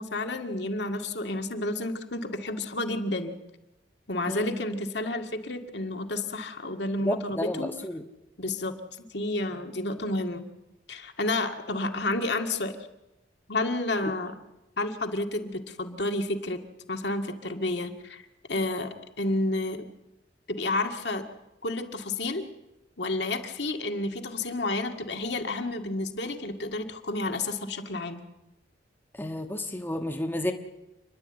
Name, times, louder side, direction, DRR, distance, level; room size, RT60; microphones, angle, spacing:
voice 1, 0.0-3.4 4.1-7.7 8.4-10.5 10.9-12.8 13.5-14.3 14.8-16.6 16.9-18.2 18.5-19.8 20.5-21.2 21.6-22.5 23.0-28.2, left 2 dB, 60° left, 4 dB, 2.0 m, -30 dB
voice 2, 7.0-8.0 29.2-30.5, left 1 dB, 10° left, 4 dB, 1.1 m, -31 dB
28.5 x 11.0 x 9.7 m, 0.95 s
head